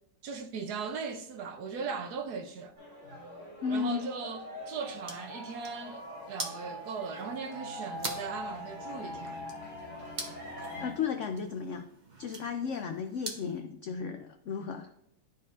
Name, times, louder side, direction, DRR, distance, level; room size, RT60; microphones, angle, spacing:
voice 1, 0.2-2.7 3.7-9.4, right 5 dB, 70° right, 1.2 m, -38 dB
sound 1, 2.8-10.9, left 1 dB, 85° right, 3.5 m, -43 dB
voice 2, 3.6-4.0 10.8-11.9 12.2-14.9, left 6 dB, 80° left, 0.6 m, -34 dB
sound 2, 4.8-13.6, right 3 dB, 35° right, 0.9 m, -45 dB
12.0 x 4.3 x 2.5 m
omnidirectional pair, 1.9 m